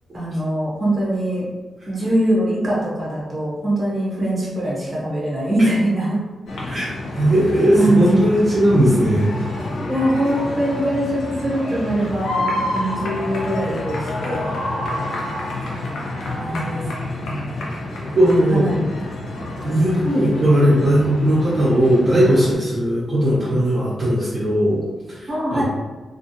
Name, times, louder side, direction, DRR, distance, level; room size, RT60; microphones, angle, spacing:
voice 1, 0.1-1.5 1.9-6.2 7.7-8.2 9.9-14.6 16.2-17.7 18.5-18.7 25.3-25.6, right 1 dB, 20° right, -6 dB, 0.9 m, -22 dB
sound 1, 6.5-22.5, left 2 dB, 90° left, 0.6 m, -28 dB
voice 2, 7.1-9.4 15.7-15.8 16.5-16.6 18.1-18.8 19.4-24.8 25.1-25.6, equal, 40° right, -9 dB, 0.6 m, -18 dB
2.4 x 2.3 x 2.7 m, 1.3 s
wide cardioid pair, 150°, 0 cm